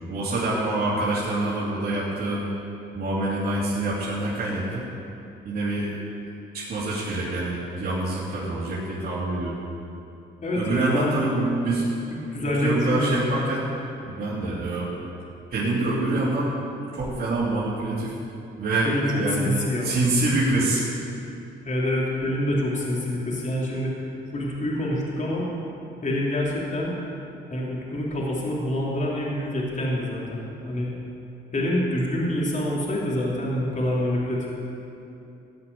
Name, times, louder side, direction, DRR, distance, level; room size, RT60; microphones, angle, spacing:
voice 1, 0.1-2.5 2.9-4.8 5.4-5.9 6.5-9.6 10.5-11.8 12.4-13.6 14.0-14.9 15.5-16.5 16.9-18.2 18.6-20.8, right 2 dB, 50° right, -8 dB, 2.8 m, -26 dB
voice 2, 10.4-11.2 12.3-13.2 18.8-20.0 21.6-24.0 24.3-25.4 26.0-26.9 27.5-30.9 31.5-34.5, left 1 dB, 40° left, -4 dB, 2.9 m, -26 dB
15.0 x 5.5 x 9.3 m, 2.8 s
cardioid pair, 90°, 20 cm